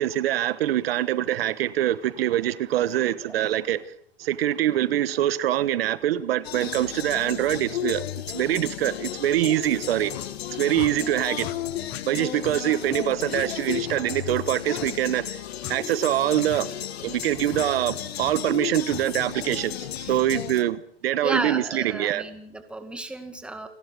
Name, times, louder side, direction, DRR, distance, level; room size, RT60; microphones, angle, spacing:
voice 1, 0.0-3.9 4.2-8.0 8.3-10.1 10.5-11.5 12.1-15.4 15.7-16.7 17.0-22.2, right 13 dB, 70° right, 1.2 m, -24 dB
sound 1, 6.4-20.6, left 11 dB, 80° left, 2.3 m, -34 dB
sound 2, 10.1-10.3 10.7-10.9 11.4-11.6 11.9-12.0 12.4-12.6 12.9-13.0 13.3-13.5 13.8-14.0 14.7-14.9 15.6-15.8 16.5-16.6 17.5-17.7 18.2-18.4 18.8-19.0, left 15 dB, 30° left, 1.4 m, -38 dB
voice 2, 21.2-23.7, right 2 dB, 5° right, 2.0 m, -33 dB
29.0 x 12.0 x 8.3 m
supercardioid pair, 160°, 31 cm